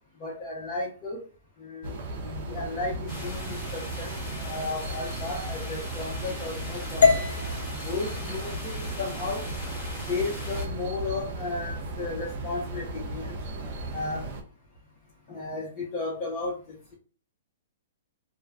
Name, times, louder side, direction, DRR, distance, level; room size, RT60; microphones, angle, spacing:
voice 1, 0.2-1.2 1.6-7.3 7.8-9.4 10.1-13.4 13.9-14.3 15.3-16.9, left 3 dB, 30° left, -5 dB, 0.7 m, -34 dB
sound 1, 1.8-14.4, right 1 dB, 55° right, 0.5 m, -36 dB
sound 2, 3.1-10.7, equal, 5° left, 1.1 m, -40 dB
sound 3, 7.0-11.1, left 5 dB, 80° left, 0.5 m, -28 dB
2.4 x 2.2 x 2.4 m, 0.38 s
hypercardioid pair, 145°, 0 cm